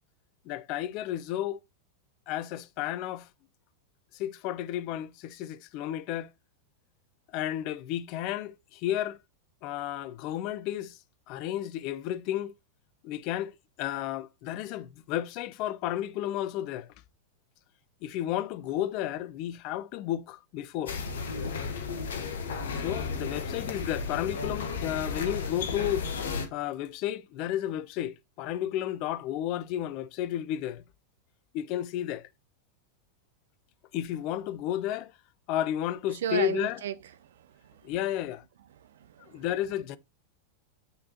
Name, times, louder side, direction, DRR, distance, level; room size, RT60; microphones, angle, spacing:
voice 1, 0.5-1.6 2.3-3.3 4.1-6.3 7.3-9.2 9.6-11.0 11.3-12.5 13.0-13.5 13.8-16.9 18.0-20.9 22.8-26.1 26.5-30.8 31.5-32.2 33.9-35.1 35.5-36.8 37.8-38.4 39.3-40.0, left 12 dB, 40° left, 0.4 m, -32 dB
sound 1, 20.9-26.5, left 5 dB, 60° left, 1.0 m, -33 dB
voice 2, 36.1-36.9 37.2-37.9 38.7-39.4, right 9 dB, 60° right, 0.5 m, -35 dB
8.6 x 4.2 x 2.7 m
figure-of-eight pair, 90°, 0 cm